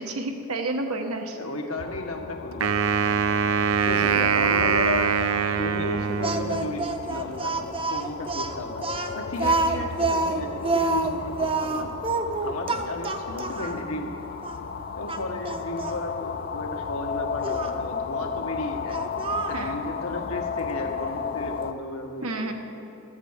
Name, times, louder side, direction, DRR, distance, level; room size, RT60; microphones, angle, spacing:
voice 1, 0.0-1.4 19.5-19.7 22.2-22.5, right 2 dB, 90° right, 4 dB, 1.2 m, -30 dB
voice 2, 1.3-3.5 3.8-5.1 5.4-8.9 9.1-11.9 12.4-14.4 14.9-19.0 19.5-22.5, left 2 dB, 80° left, 3 dB, 1.4 m, -34 dB
sound 1, 1.8-21.7, left 6 dB, 45° left, 0.5 m, -35 dB
Wind instrument woodwind instrument, 2.6-6.9, right 6 dB, 70° right, 0.5 m, -23 dB
Speech, 6.2-13.8 14.4-14.6 15.1-16.0 17.4-17.7 18.9-19.7, right 3 dB, 25° right, 0.6 m, -27 dB
12.5 x 8.0 x 8.0 m, 2.6 s
head